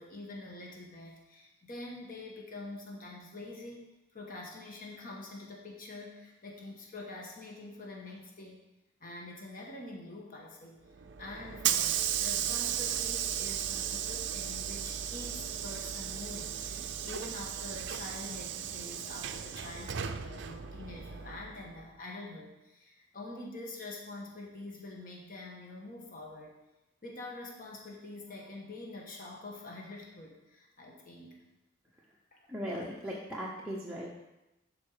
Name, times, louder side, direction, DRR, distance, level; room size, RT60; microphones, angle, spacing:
voice 1, 0.0-8.6 9.0-10.8 11.2-26.6 27.0-31.4 32.3-32.5, left 2 dB, 40° left, -1 dB, 1.3 m, -46 dB
Hiss / Sliding door, 10.9-21.8, right 10 dB, 55° right, 0.5 m, -35 dB
voice 2, 32.5-34.1, equal, 5° right, -6 dB, 0.8 m, -38 dB
12.0 x 4.4 x 4.9 m, 0.97 s
head